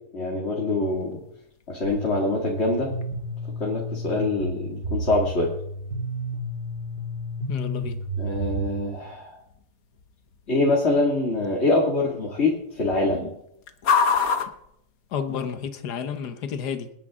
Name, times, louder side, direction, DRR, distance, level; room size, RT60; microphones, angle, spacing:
voice 1, 0.1-1.2 1.7-2.9 3.6-5.5 8.2-9.4 10.5-13.3, left 2 dB, 40° left, -2 dB, 2.7 m, -24 dB
sound 1, 0.9-15.7, left 6 dB, 60° left, 1.5 m, -34 dB
sound 2, 1.8-8.7, right 1 dB, 80° right, 3.3 m, -32 dB
voice 2, 7.5-8.0 15.1-16.9, left 7 dB, 75° left, 8 dB, 1.7 m, -31 dB
28.0 x 10.5 x 3.7 m, 0.80 s
omnidirectional pair, 1.7 m